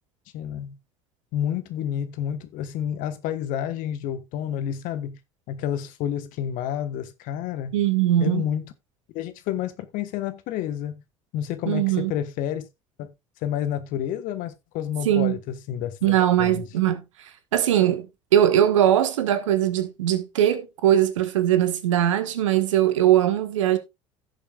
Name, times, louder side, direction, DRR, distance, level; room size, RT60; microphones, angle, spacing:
voice 1, 0.3-0.8 1.3-5.2 5.5-7.8 8.2-8.6 9.1-11.0 11.3-12.6 13.0-13.1 13.4-16.6, left 10 dB, 55° left, 1.2 m, -29 dB
voice 2, 7.7-8.5 11.7-12.1 15.0-15.4 16.0-18.1 18.3-23.8, right 11 dB, 75° right, 1.4 m, -21 dB
16.5 x 7.0 x 2.4 m
figure-of-eight pair, 60°, 16 cm